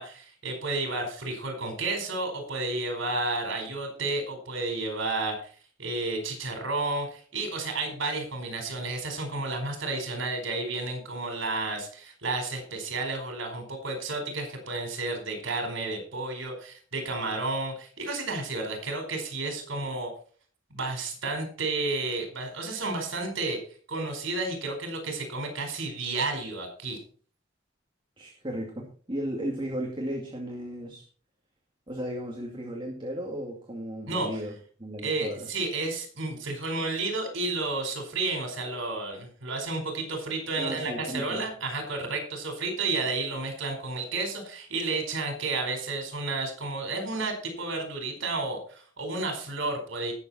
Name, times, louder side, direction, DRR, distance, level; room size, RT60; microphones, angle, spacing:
voice 1, 0.0-5.5 5.8-20.1 20.7-23.6 23.9-27.0 34.1-34.3 35.0-50.1, right 3 dB, 80° right, 4 dB, 4.8 m, -31 dB
voice 2, 28.2-31.0 31.9-34.5 34.8-35.5 40.6-41.5, equal, 25° right, 1 dB, 2.2 m, -35 dB
19.5 x 7.2 x 4.3 m, 0.43 s
head